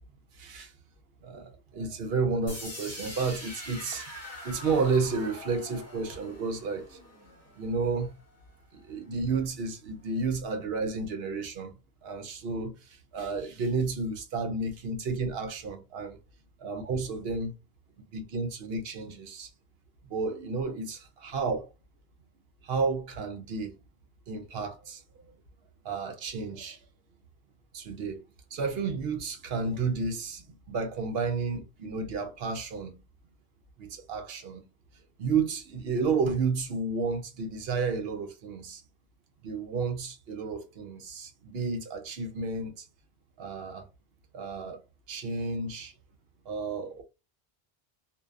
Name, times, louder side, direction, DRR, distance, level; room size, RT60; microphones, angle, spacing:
voice 1, 0.3-0.7 1.2-4.1 4.4-7.0 7.6-8.1 8.7-11.7 12.0-12.7 13.1-16.2 16.6-17.5 18.1-19.5 20.1-21.7 22.6-23.8 24.3-25.0 25.8-26.8 27.7-28.2 28.5-33.0 33.8-34.6 35.2-38.8 39.4-42.9 43.4-43.9 44.3-44.8 45.1-45.9 46.5-47.0, right 4 dB, 75° right, 0.9 m, -31 dB
sound 1, 2.5-8.4, left 1 dB, 15° left, 1.0 m, -44 dB
2.7 x 2.2 x 2.3 m
omnidirectional pair, 1.0 m